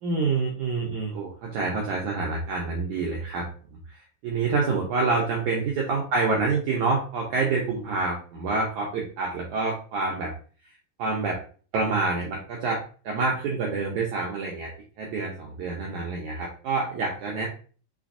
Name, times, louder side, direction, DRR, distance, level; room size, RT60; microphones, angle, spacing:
voice 1, 0.0-3.5 3.9-10.3 11.0-11.4 11.7-14.7 15.0-17.5, right 4 dB, 85° right, -1 dB, 1.7 m, -27 dB
6.0 x 3.3 x 2.6 m, 0.41 s
omnidirectional pair, 4.3 m